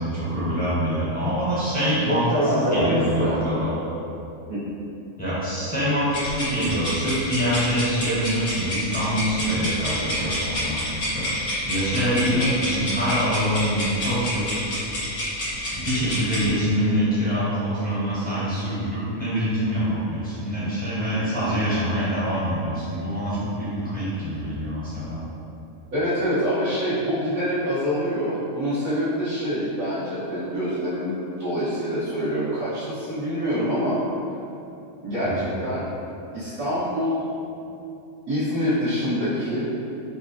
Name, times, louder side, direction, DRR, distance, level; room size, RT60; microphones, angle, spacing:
voice 1, 0.0-3.7 5.2-11.3 11.7-14.4 15.7-25.2 35.2-35.5, equal, 5° left, -13 dB, 1.1 m, -25 dB
voice 2, 2.1-3.9 4.5-4.6 12.1-12.4 25.9-31.1 31.4-34.0 35.0-35.9 36.3-37.2 38.3-39.7, equal, 85° right, -17 dB, 1.7 m, -25 dB
sound 1, 6.1-16.5, left 1 dB, 75° left, 1.7 m, -28 dB
5.1 x 2.1 x 2.7 m, 2.8 s
omnidirectional pair, 1.5 m